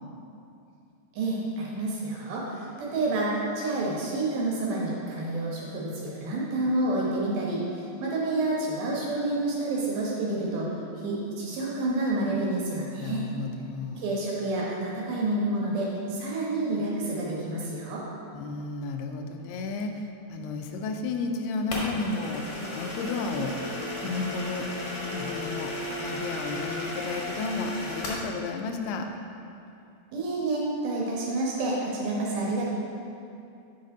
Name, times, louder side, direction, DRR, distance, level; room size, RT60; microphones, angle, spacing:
voice 1, 1.2-10.7 11.0-13.3 14.0-18.0 30.1-32.6, right 2 dB, 70° right, -4 dB, 2.8 m, -29 dB
voice 2, 13.0-14.1 18.3-22.4 22.7-23.6 24.0-24.7 25.1-25.7 26.0-29.1, left 4 dB, 85° left, 5 dB, 2.6 m, -32 dB
sound 1, 21.7-28.3, left 1 dB, 55° left, 1.6 m, -34 dB
9.6 x 5.7 x 3.9 m, 2.6 s
omnidirectional pair, 4.7 m